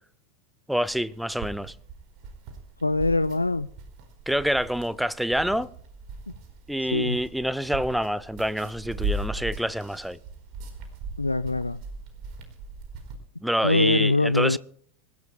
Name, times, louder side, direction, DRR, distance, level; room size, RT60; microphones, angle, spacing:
voice 1, 0.7-1.7 4.3-5.7 6.7-10.2 13.4-14.6, equal, ahead, 0.7 m, -27 dB
sound 1, 0.8-13.2, right 2 dB, 50° right, 4.4 m, -38 dB
voice 2, 2.8-3.7 6.9-7.2 11.2-11.8 13.6-14.6, left 2 dB, 85° left, 0.4 m, -23 dB
26.0 x 15.0 x 2.3 m
figure-of-eight pair, 85°, 0 cm